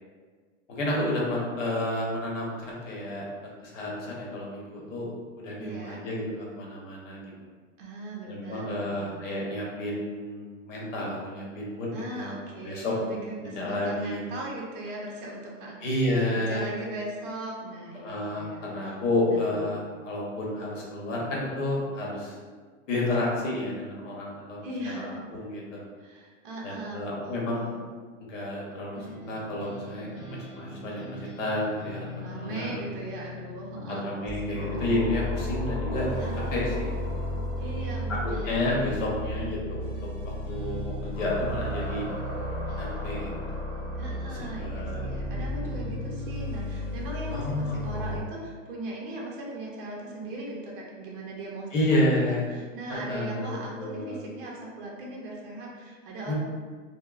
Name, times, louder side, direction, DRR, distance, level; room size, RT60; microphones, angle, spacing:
voice 1, 0.7-3.3 3.6-5.1 5.4-7.2 8.3-12.3 12.6-12.9 13.4-14.2 15.8-16.7 18.0-22.4 22.9-24.6 24.9-25.8 26.6-27.8 28.2-30.1 30.5-32.7 33.8-36.1 36.5-36.9 38.2-40.0 40.2-42.0 42.8-43.3 44.3-45.1 45.7-45.8 47.3-47.8 51.7-52.5 52.9-54.2 56.3-56.4, left 1 dB, 70° left, -3 dB, 0.9 m, -30 dB
voice 2, 5.6-6.0 7.8-9.2 11.9-15.8 16.3-19.6 24.6-25.1 26.0-27.8 32.2-34.8 36.2-36.3 37.6-39.1 43.9-51.7 52.3-56.3, right 1 dB, 45° right, -3 dB, 0.5 m, -39 dB
sound 1, 28.9-35.8 36.1-46.9, equal, 35° left, 0.5 m, -43 dB
sound 2, 34.3-48.2, left 1 dB, 5° right, 0.7 m, -33 dB
2.9 x 2.0 x 2.3 m, 1.5 s
supercardioid pair, 165°, 39 cm